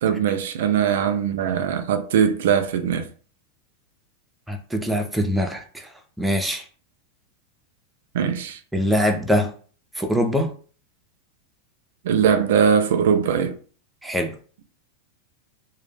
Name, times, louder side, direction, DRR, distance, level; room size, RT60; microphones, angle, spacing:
voice 1, 0.0-3.1 8.1-8.6 12.0-13.6, right 7 dB, 75° right, 0.3 m, -21 dB
voice 2, 4.5-5.9 6.2-6.6 8.7-9.5 10.0-10.5 14.0-14.3, equal, 5° right, 0.3 m, -23 dB
2.1 x 2.0 x 3.3 m
supercardioid pair, 150°, 0 cm